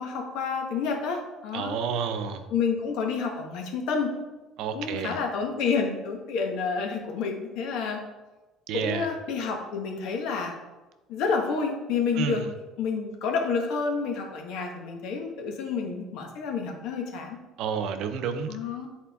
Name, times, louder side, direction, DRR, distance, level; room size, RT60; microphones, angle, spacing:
voice 1, 0.0-1.8 2.5-4.1 4.7-8.0 8.7-10.5 11.1-17.4 18.5-18.9, left 5 dB, 70° left, 2 dB, 1.1 m, -29 dB
voice 2, 1.5-2.4 4.6-5.2 8.7-9.1 12.2-12.5 17.6-18.5, right 6 dB, 65° right, 8 dB, 0.6 m, -30 dB
8.4 x 4.4 x 3.5 m, 1.1 s
cardioid pair, 145°, 0 cm